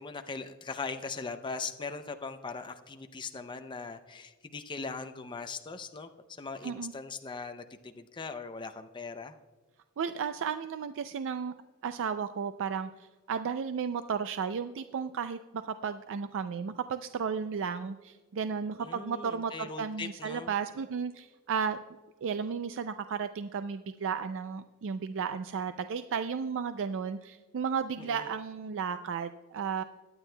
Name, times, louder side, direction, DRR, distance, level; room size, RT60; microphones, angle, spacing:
voice 1, 0.0-9.4 18.8-20.5 28.0-28.3, left 4 dB, 20° left, 8 dB, 0.4 m, -40 dB
voice 2, 10.0-11.5 11.8-12.9 13.3-21.8 22.2-29.8, right 6 dB, 60° right, 10 dB, 0.4 m, -34 dB
22.0 x 9.0 x 2.2 m, 1.3 s
head